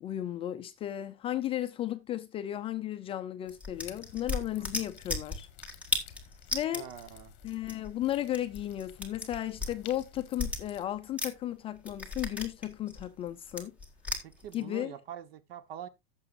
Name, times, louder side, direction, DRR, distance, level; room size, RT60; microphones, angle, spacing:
voice 1, 0.0-5.5 6.5-6.9 7.4-13.7 14.5-14.9, left 12 dB, 20° left, 0.4 m, -34 dB
sound 1, 3.5-11.5 11.8-14.6, left 2 dB, 5° right, 1.6 m, -37 dB
sound 2, 3.7-10.8, left 11 dB, 35° left, 1.7 m, -53 dB
voice 2, 6.7-7.3 14.2-15.9, right 10 dB, 65° right, 1.3 m, -45 dB
15.0 x 7.0 x 2.6 m
supercardioid pair, 160°, 32 cm